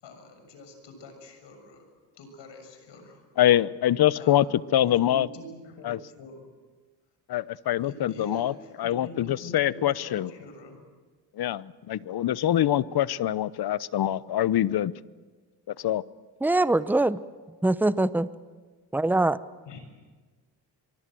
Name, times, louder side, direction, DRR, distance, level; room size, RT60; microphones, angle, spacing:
voice 1, 0.0-3.2 4.1-4.4 4.8-6.4 7.8-10.8 19.6-19.8, left 1 dB, 80° left, 6 dB, 6.7 m, -45 dB
voice 2, 3.4-4.5 4.7-5.3 5.8-6.0 7.3-10.3 11.3-14.9 15.7-16.0, left 12 dB, 60° left, 19 dB, 0.9 m, -24 dB
voice 3, 16.4-17.2 17.6-18.3 18.9-19.4, right 2 dB, 5° right, 15 dB, 0.8 m, -23 dB
24.0 x 24.0 x 7.7 m, 1.4 s
cardioid pair, 80°, 43 cm